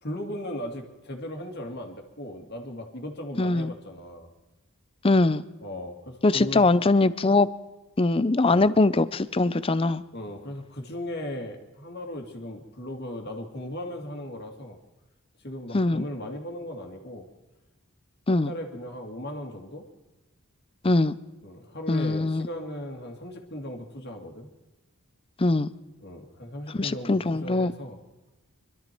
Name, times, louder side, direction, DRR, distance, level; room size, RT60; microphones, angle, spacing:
voice 1, 0.0-4.3 5.6-6.7 8.5-8.7 10.1-14.8 15.4-17.3 18.3-19.8 21.4-24.5 26.0-28.0, left 1 dB, 45° left, 3 dB, 2.2 m, -37 dB
voice 2, 3.4-3.7 5.0-5.4 6.2-7.5 8.0-10.0 15.7-16.0 18.3-18.5 20.8-21.2 21.9-22.5 25.4-25.7 26.7-27.7, left 2 dB, 25° left, 16 dB, 0.5 m, -22 dB
25.0 x 13.0 x 4.5 m, 1.1 s
head